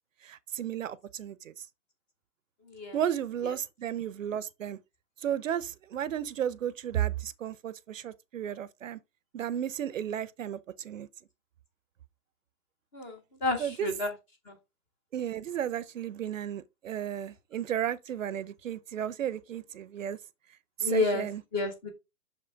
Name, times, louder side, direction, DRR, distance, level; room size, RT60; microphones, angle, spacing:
voice 1, 0.2-1.6 2.9-4.8 5.2-9.0 9.3-11.1 13.6-13.9 15.1-20.2 20.8-21.4, right 10 dB, 60° right, 0.7 m, -33 dB
voice 2, 2.7-3.0 3.4-3.5 12.9-14.1 14.5-14.6 20.8-21.9, left 3 dB, 10° left, 0.6 m, -31 dB
6.5 x 5.1 x 3.4 m
hypercardioid pair, 150°, 45 cm